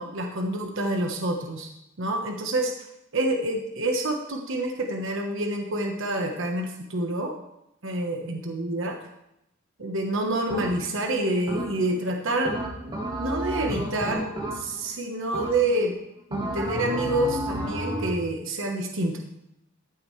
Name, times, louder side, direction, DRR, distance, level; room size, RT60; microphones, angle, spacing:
voice 1, 0.0-1.7 2.0-2.7 3.1-7.3 7.8-9.0 9.8-12.5 12.8-15.9 16.3-19.2, right 1 dB, 65° right, 3 dB, 1.2 m, -27 dB
sound 1, 10.5-11.0 11.5-12.0 12.4-14.9 15.3-15.9 16.3-18.2, right 1 dB, 20° right, 1.6 m, -31 dB
14.0 x 8.7 x 3.2 m, 0.83 s
head